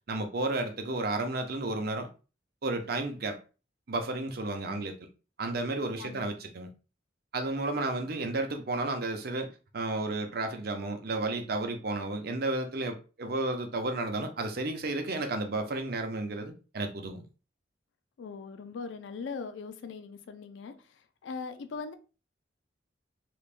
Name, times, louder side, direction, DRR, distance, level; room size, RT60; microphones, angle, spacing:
voice 1, 0.1-2.1 2.6-3.4 3.9-5.0 5.4-6.7 7.3-17.2, right 2 dB, 55° right, 0.7 m, -32 dB
voice 2, 18.2-21.9, left 5 dB, 85° left, 0.4 m, -41 dB
3.4 x 3.0 x 2.4 m
head